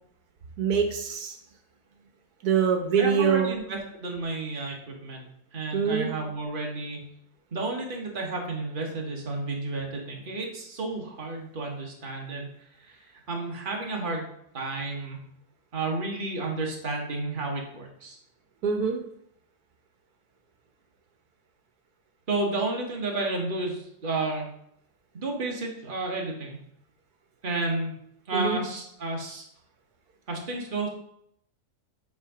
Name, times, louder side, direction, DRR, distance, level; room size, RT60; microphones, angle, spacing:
voice 1, 0.6-1.4 2.4-3.5 5.7-6.1 18.6-19.0 28.3-28.6, right 6 dB, 80° right, 4 dB, 1.4 m, -24 dB
voice 2, 3.0-5.3 5.5-7.0 7.5-12.5 12.8-14.3 14.5-15.2 15.7-18.2 22.3-24.5 25.1-26.6 27.4-27.9 28.3-29.4 30.3-30.9, right 3 dB, 35° right, -1 dB, 1.5 m, -31 dB
8.6 x 3.7 x 4.9 m, 0.72 s
omnidirectional pair, 1.6 m